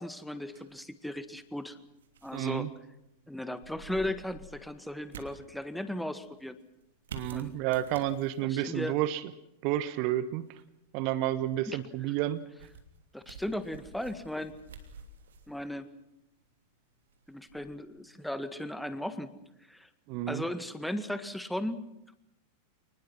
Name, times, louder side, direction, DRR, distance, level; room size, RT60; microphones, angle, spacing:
voice 1, 0.0-1.8 2.2-2.7 3.3-6.6 7.3-7.5 8.4-9.0 11.7-11.8 13.1-14.5 15.5-15.9 17.3-19.3 19.7-19.9 20.3-22.1, left 1 dB, ahead, 11 dB, 1.7 m, -36 dB
sound 1, 0.5-18.6, right 4 dB, 65° right, 2.9 m, -52 dB
voice 2, 2.3-2.7 7.1-9.2 9.6-10.5 10.9-12.4 20.1-20.4, right 13 dB, 45° right, 16 dB, 1.1 m, -30 dB
29.0 x 20.0 x 6.2 m, 0.86 s
figure-of-eight pair, 90°, 0 cm